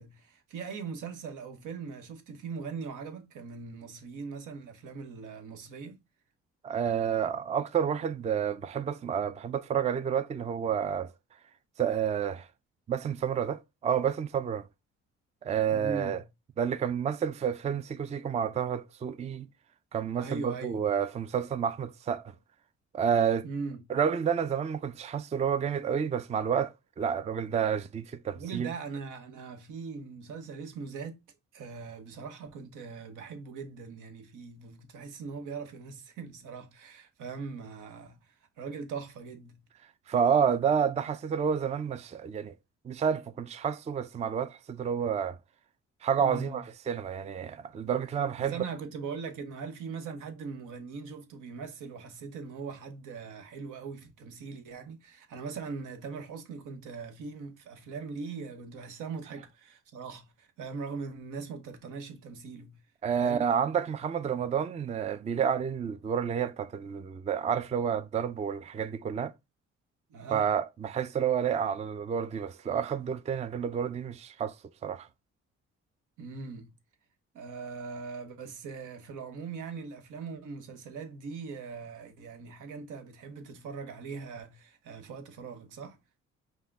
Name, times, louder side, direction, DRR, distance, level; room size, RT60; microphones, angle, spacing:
voice 1, 0.0-6.0 15.7-16.2 20.2-20.8 23.4-23.8 28.3-31.2 31.5-39.6 46.2-46.7 48.4-62.8 63.2-63.4 70.1-70.5 76.2-76.7 77.3-86.0, right 5 dB, 85° right, 1.0 m, -41 dB
voice 2, 6.6-11.1 11.8-12.5 12.9-14.7 15.4-16.2 16.6-19.5 19.9-22.3 22.9-23.5 23.9-28.7 40.1-42.5 42.8-45.4 46.0-48.5 63.0-69.3 70.3-74.6 74.8-75.1, right 7 dB, 25° right, 0.3 m, -29 dB
5.4 x 2.2 x 3.5 m
cardioid pair, 90°, 30 cm